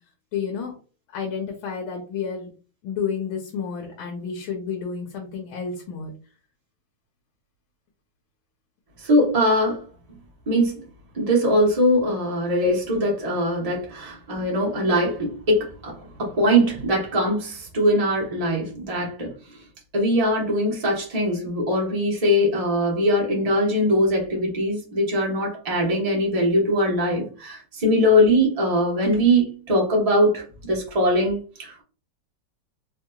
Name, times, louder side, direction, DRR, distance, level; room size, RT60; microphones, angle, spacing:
voice 1, 0.3-0.7 1.1-2.5 2.8-6.1, left 6 dB, 90° left, 1.6 m, -30 dB
voice 2, 9.0-9.8 10.5-10.8 11.1-19.6 19.9-31.8, equal, 30° right, 0.7 m, -21 dB
3.5 x 2.7 x 2.2 m
omnidirectional pair, 2.2 m